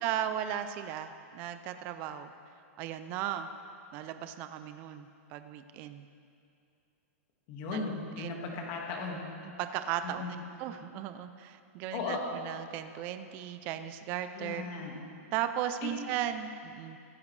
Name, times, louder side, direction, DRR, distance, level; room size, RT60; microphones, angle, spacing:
voice 1, 0.0-2.3 2.8-3.5 3.9-6.1 7.7-7.9 8.2-8.4 9.4-10.2 10.6-14.6 15.3-17.0, right 10 dB, 25° right, 9 dB, 0.4 m, -36 dB
voice 2, 7.5-9.2 10.0-10.3 11.9-12.2 14.4-15.0 15.8-15.9, left 4 dB, 30° left, 0 dB, 1.7 m, -36 dB
15.5 x 15.0 x 3.2 m, 2.5 s
supercardioid pair, 175°, 8 cm